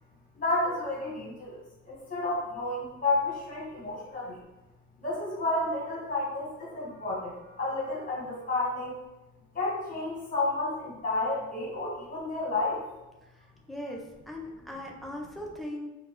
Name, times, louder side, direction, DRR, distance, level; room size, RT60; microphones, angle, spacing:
voice 1, 0.3-4.4 5.0-9.0 9.5-12.8, left 2 dB, 25° left, -5 dB, 1.2 m, -31 dB
voice 2, 13.2-15.9, left 1 dB, ahead, -1 dB, 0.3 m, -40 dB
4.1 x 2.0 x 3.0 m, 1.0 s
wide cardioid pair, 175°, 31 cm